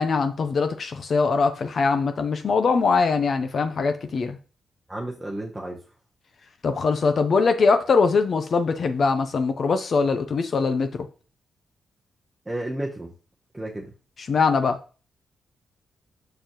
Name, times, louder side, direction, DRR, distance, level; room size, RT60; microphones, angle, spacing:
voice 1, 0.0-4.4 6.6-10.9 14.3-14.8, left 4 dB, 40° left, 0.7 m, -22 dB
voice 2, 4.9-5.8 12.5-13.1 13.5-13.9, right 1 dB, 10° right, 1.0 m, -32 dB
6.9 x 6.9 x 3.0 m
wide cardioid pair, 175°, 0 cm